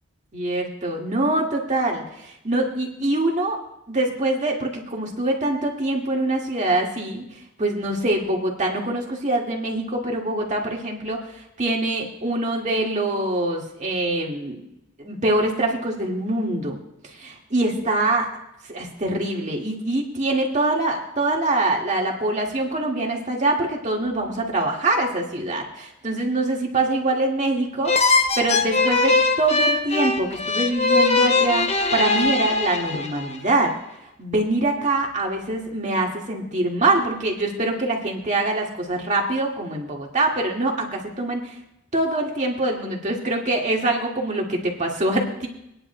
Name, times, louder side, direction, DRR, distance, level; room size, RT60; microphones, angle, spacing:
voice 1, 0.3-3.6 3.9-7.3 7.6-14.6 15.0-18.3 18.7-33.7 34.2-41.6 41.9-45.5, right 2 dB, 35° right, -1 dB, 1.9 m, -24 dB
sound 1, 27.9-33.4, left 3 dB, 30° left, 0.7 m, -21 dB
25.5 x 10.0 x 2.2 m, 0.83 s
head